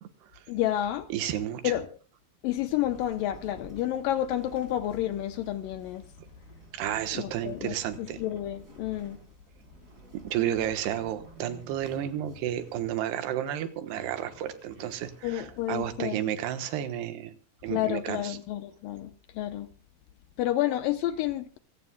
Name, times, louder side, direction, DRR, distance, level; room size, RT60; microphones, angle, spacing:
voice 1, 0.5-1.1 1.6-1.9 2.4-6.0 7.1-9.2 15.2-16.2 17.7-19.7 20.4-21.6, left 13 dB, 75° left, 2.2 m, -30 dB
voice 2, 1.1-1.7 6.7-8.2 10.1-17.3 17.6-18.4, right 11 dB, 85° right, 3.3 m, -32 dB
sound 1, 2.5-15.8, right 2 dB, 20° right, 4.7 m, -52 dB
25.5 x 16.5 x 2.3 m
omnidirectional pair, 4.6 m